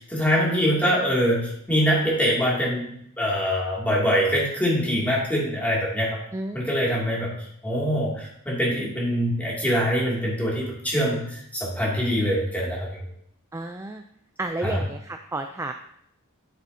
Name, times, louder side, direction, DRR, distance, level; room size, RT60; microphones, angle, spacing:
voice 1, 0.0-6.2 6.5-7.3 7.6-12.9 14.6-14.8, equal, 10° left, -5 dB, 2.5 m, -24 dB
voice 2, 6.3-6.9 13.5-14.0 14.4-15.7, right 2 dB, 15° right, 5 dB, 0.4 m, -32 dB
10.0 x 7.7 x 2.8 m, 0.72 s
head